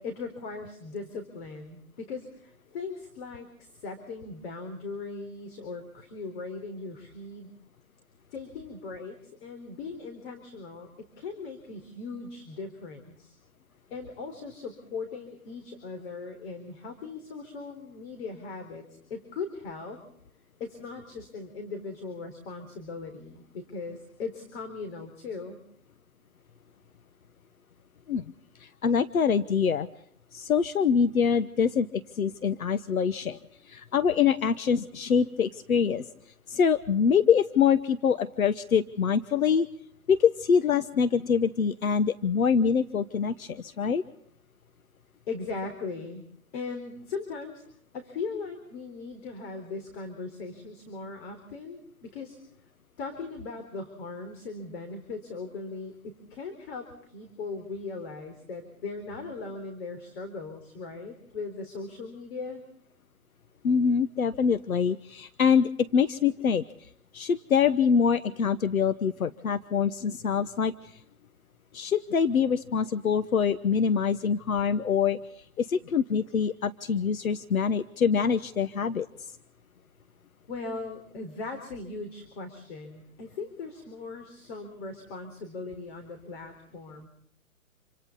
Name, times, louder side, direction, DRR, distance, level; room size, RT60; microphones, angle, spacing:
voice 1, 0.0-7.5 8.3-13.4 13.9-20.0 20.6-25.6 45.3-46.2 46.5-47.6 47.9-52.4 53.0-62.6 80.5-87.1, left 4 dB, 45° left, 6 dB, 4.1 m, -39 dB
voice 2, 28.6-29.9 30.3-33.4 33.7-36.1 36.5-39.7 40.1-44.0 63.6-66.9 67.1-70.9 71.7-75.2 75.6-79.1, left 6 dB, 75° left, 13 dB, 1.1 m, -25 dB
28.0 x 26.5 x 4.0 m, 0.69 s
hypercardioid pair, 140°, 42 cm